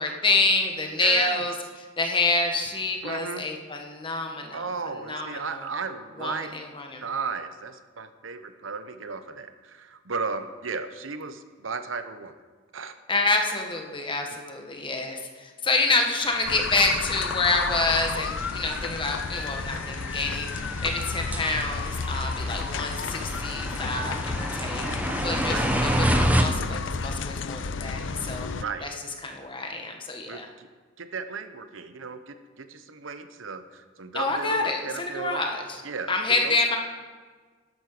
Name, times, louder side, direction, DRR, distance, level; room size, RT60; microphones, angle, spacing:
voice 1, 0.0-1.5 2.0-4.7 5.1-5.6 6.2-7.0 13.1-24.9 25.2-28.5 28.8-28.9 29.2-30.5 34.1-35.6 36.1-36.8, left 3 dB, 25° left, 3 dB, 1.6 m, -27 dB
voice 2, 1.0-1.5 3.0-3.5 4.5-6.5 7.0-12.3 12.7-12.9 25.5-25.7 28.6-28.9 30.3-30.7 31.0-35.5 35.8-36.1 36.4-36.6, right 4 dB, 85° right, 10 dB, 0.9 m, -35 dB
sound 1, 16.2-26.5, right 1 dB, 10° right, 1.0 m, -30 dB
sound 2, 16.5-28.6, left 5 dB, 70° left, 0.6 m, -32 dB
11.0 x 10.5 x 6.8 m, 1.5 s
head